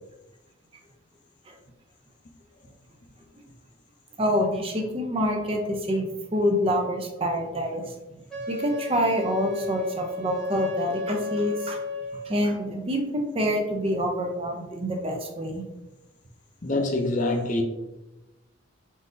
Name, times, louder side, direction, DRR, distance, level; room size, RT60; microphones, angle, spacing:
voice 1, 4.2-6.1 6.3-7.9 8.5-11.8 12.2-13.0 13.3-15.6, equal, 30° right, 0.5 m, -26 dB
Wind instrument woodwind instrument, 8.3-12.4, left 1 dB, 5° left, 0.8 m, -33 dB
voice 2, 16.6-17.6, left 2 dB, 40° left, 0.5 m, -25 dB
3.8 x 2.6 x 3.7 m
head